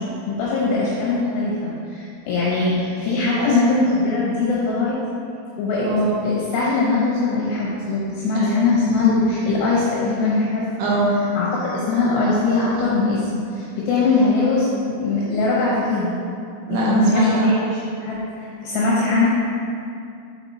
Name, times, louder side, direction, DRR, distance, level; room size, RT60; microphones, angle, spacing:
voice 1, 0.0-5.0 5.6-5.9 6.2-10.7 11.4-13.2 13.5-16.1 16.7-17.5 18.0-19.3, left 3 dB, 75° left, -7 dB, 2.6 m, -21 dB
voice 2, 5.8-6.2 8.3-8.6 10.8-11.2 16.7-17.5, right 2 dB, 80° right, -5 dB, 3.3 m, -21 dB
6.0 x 5.8 x 4.1 m, 2.4 s
omnidirectional pair, 6.0 m